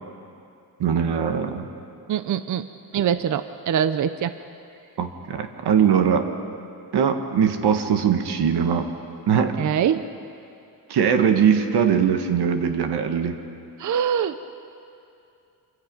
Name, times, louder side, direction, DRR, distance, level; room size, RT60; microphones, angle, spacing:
voice 1, 0.8-1.6 5.0-6.3 6.9-8.9 9.3-9.6 10.9-13.4, right 7 dB, 85° right, 6 dB, 1.7 m, -21 dB
voice 2, 2.1-2.7 2.9-4.3 9.6-10.1 13.8-14.4, right 8 dB, 50° right, 12 dB, 0.6 m, -23 dB
27.0 x 24.0 x 5.4 m, 2.6 s
wide cardioid pair, 170°, 39 cm